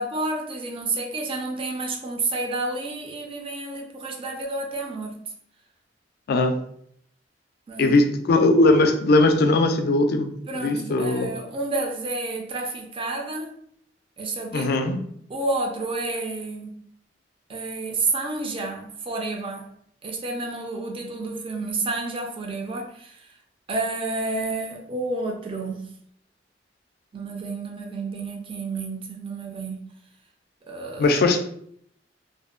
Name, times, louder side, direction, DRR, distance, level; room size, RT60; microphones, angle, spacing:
voice 1, 0.0-5.2 7.7-8.0 10.5-13.5 14.2-14.9 15.3-16.9 17.5-19.7 20.0-23.3 23.7-25.9 27.1-29.9 30.7-31.2, right 2 dB, 30° right, 2 dB, 0.4 m, -30 dB
voice 2, 6.3-6.6 7.8-11.3 14.5-15.0 31.0-31.4, left 2 dB, 60° left, 6 dB, 0.3 m, -19 dB
2.5 x 2.1 x 2.3 m, 0.67 s
head